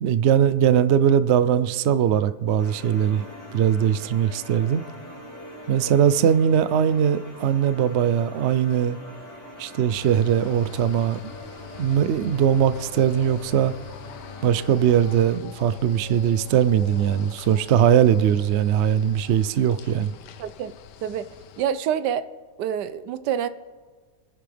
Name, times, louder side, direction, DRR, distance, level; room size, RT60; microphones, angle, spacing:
voice 1, 0.0-3.2 3.5-4.8 5.7-9.0 9.6-11.3 11.8-13.7 14.4-20.1, right 9 dB, 65° right, 14 dB, 0.6 m, -20 dB
sound 1, 2.6-15.4, equal, 45° left, 4.8 m, -43 dB
sound 2, 9.9-21.6, left 9 dB, 85° left, 1.3 m, -44 dB
voice 2, 20.4-20.7 21.0-21.3 21.6-22.2 22.6-23.5, right 9 dB, 85° right, 13 dB, 1.3 m, -26 dB
26.0 x 10.5 x 3.4 m, 1.5 s
omnidirectional pair, 1.8 m